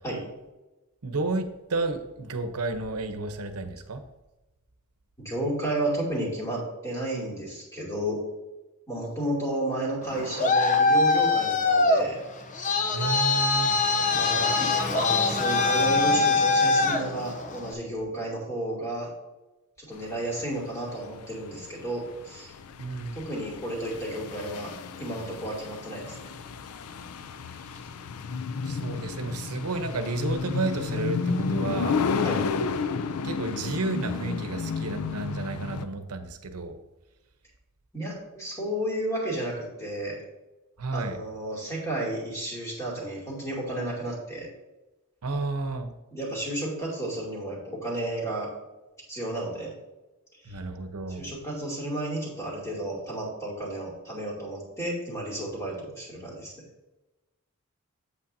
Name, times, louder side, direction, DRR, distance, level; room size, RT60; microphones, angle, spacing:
voice 1, 1.0-4.0 12.9-13.8 22.8-23.2 28.6-32.0 33.2-36.8 40.8-41.2 45.2-45.9 50.5-51.3, right 3 dB, 90° right, 8 dB, 0.8 m, -31 dB
voice 2, 5.2-8.2 8.9-12.2 14.1-19.1 19.8-22.5 23.1-24.7 25.0-26.3 32.2-32.5 37.9-40.2 40.9-44.5 46.1-48.5 49.1-49.7 50.4-50.6 51.1-56.5, right 1 dB, 15° left, -5 dB, 2.7 m, -32 dB
Traffic noise roadway noise, 10.0-17.7, left 3 dB, 35° left, 0.6 m, -23 dB
sound 1, 20.0-35.8, left 5 dB, 80° left, 0.5 m, -32 dB
8.6 x 8.0 x 2.7 m, 1.1 s
head